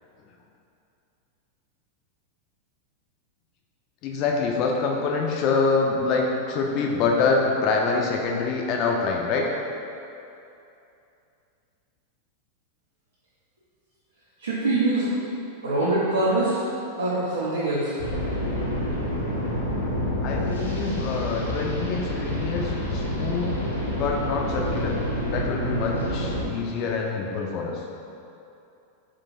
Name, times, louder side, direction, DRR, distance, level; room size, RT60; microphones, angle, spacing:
voice 1, 4.0-9.5 20.2-23.5 23.9-25.0 25.3-27.8, left 4 dB, 40° left, 0 dB, 0.4 m, -25 dB
voice 2, 14.4-15.1 15.6-16.6 17.0-17.9, right 2 dB, 70° right, -8 dB, 0.7 m, -23 dB
sound 1, 18.0-26.4, equal, 75° left, 0.7 m, -28 dB
4.6 x 3.8 x 2.5 m, 2.7 s
figure-of-eight pair, 90°, 0 cm